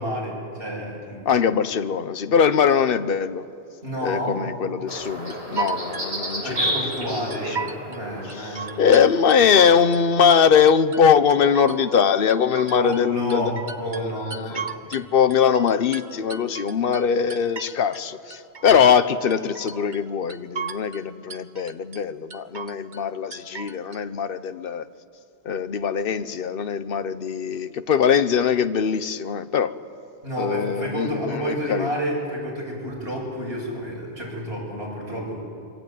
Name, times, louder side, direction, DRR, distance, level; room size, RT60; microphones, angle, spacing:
voice 1, 0.0-1.3 3.8-4.4 6.4-8.8 12.7-14.9 30.2-35.4, equal, 65° right, -2 dB, 7.9 m, -30 dB
voice 2, 1.3-3.4 4.0-6.9 8.4-8.5 8.8-13.5 13.9-14.6 14.9-24.8 25.4-29.7 30.4-31.9, left 7 dB, 60° left, 12 dB, 1.1 m, -21 dB
sound 1, 4.9-9.8, equal, 35° right, 5.4 m, -32 dB
sound 2, 5.3-7.0 7.3-8.0 8.3-10.0 10.3-11.0 11.3-15.1 15.3-18.0 18.3-19.0 19.3-20.0 20.3-21.0 21.3-22.0 22.3-23.0 23.3-24.0, right 5 dB, 50° right, 1.1 m, -35 dB
26.0 x 24.5 x 9.3 m, 2.6 s
omnidirectional pair, 1.1 m